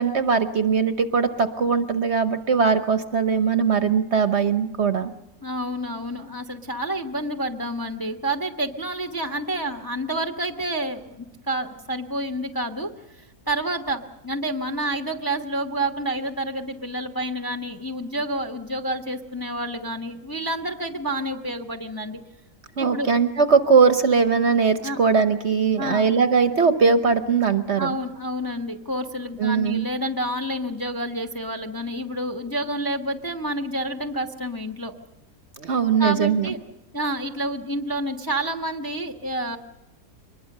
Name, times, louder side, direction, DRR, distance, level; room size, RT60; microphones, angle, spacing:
voice 1, 0.0-5.1 22.8-28.0 29.4-29.9 35.6-36.5, right 5 dB, 50° right, 10 dB, 1.1 m, -20 dB
voice 2, 5.4-22.2 22.8-23.1 24.8-25.0 25.8-26.1 27.8-34.9 36.0-36.6 36.9-39.6, right 1 dB, 15° left, 6 dB, 0.9 m, -29 dB
24.0 x 21.0 x 6.6 m, 0.95 s
omnidirectional pair, 1.7 m